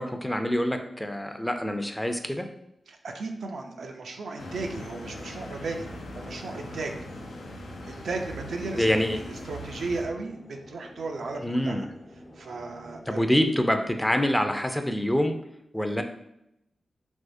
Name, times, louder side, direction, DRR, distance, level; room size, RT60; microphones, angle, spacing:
voice 1, 0.0-2.5 8.8-9.2 11.4-11.9 13.1-15.4 15.7-16.0, equal, 10° left, 6 dB, 0.4 m, -26 dB
voice 2, 2.9-5.9 6.1-7.0 7.9-10.4 10.7-13.4, right 3 dB, 80° right, 3 dB, 0.4 m, -35 dB
sound 1, 4.4-10.0, left 1 dB, 85° left, 0.5 m, -40 dB
sound 2, 5.8-13.3, left 1 dB, 60° left, 0.9 m, -49 dB
3.5 x 2.9 x 2.6 m, 0.80 s
cardioid pair, 45°, 0 cm